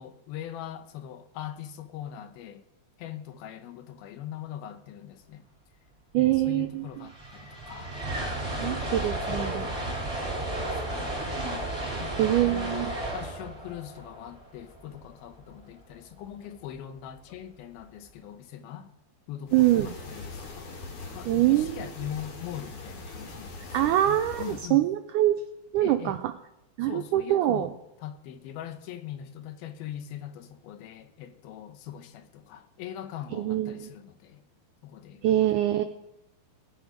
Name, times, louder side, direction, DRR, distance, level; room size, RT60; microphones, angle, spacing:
voice 1, 0.0-2.6 3.0-5.5 6.2-8.0 8.5-8.9 9.3-11.4 12.0-12.2 12.5-18.9 19.3-24.8 25.8-26.2 26.8-34.4 34.8-35.3, left 10 dB, 85° left, 2.8 m, -41 dB
voice 2, 6.1-6.9 8.6-9.7 12.2-12.9 19.5-19.9 21.3-21.9 23.7-25.4 25.7-26.2 26.8-27.7 33.3-33.9 35.2-35.8, right 13 dB, 85° right, 1.7 m, -24 dB
sound 1, 6.6-6.7 6.8-15.1, right 1 dB, 10° right, 3.2 m, -33 dB
sound 2, 19.5-24.7, left 3 dB, 55° left, 3.5 m, -41 dB
19.0 x 8.8 x 5.1 m
omnidirectional pair, 4.3 m